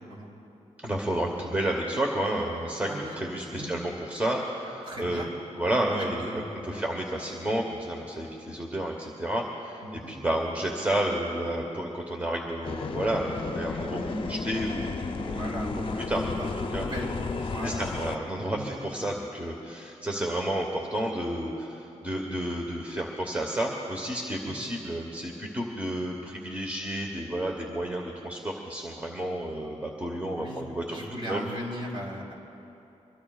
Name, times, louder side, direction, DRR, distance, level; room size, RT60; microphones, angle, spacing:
voice 1, 0.8-5.3 5.6-15.4 15.7-16.9 17.6-31.0 31.3-31.4, right 1 dB, 15° right, 0 dB, 1.1 m, -31 dB
voice 2, 4.8-5.3 5.9-6.8 9.8-10.1 15.3-17.8 18.5-18.7 24.4-24.5 30.3-30.6 30.9-32.3, equal, 45° right, -3 dB, 3.4 m, -37 dB
sound 1, 12.6-18.1, left 3 dB, 45° left, 0.7 m, -33 dB
24.0 x 22.0 x 2.4 m, 2.9 s
wide cardioid pair, 145°, 12 cm